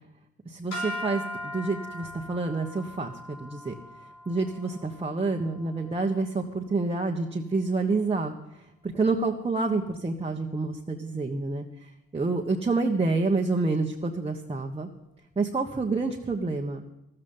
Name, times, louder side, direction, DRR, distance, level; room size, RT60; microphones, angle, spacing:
voice 1, 0.4-3.7 4.2-8.3 8.8-11.6 12.1-14.9 15.3-16.8, right 3 dB, 20° right, 1 dB, 1.4 m, -28 dB
sound 1, 0.7-7.1, left 1 dB, 75° left, 5.5 m, -40 dB
14.0 x 13.5 x 5.6 m, 0.88 s
cardioid pair, 90°, 30 cm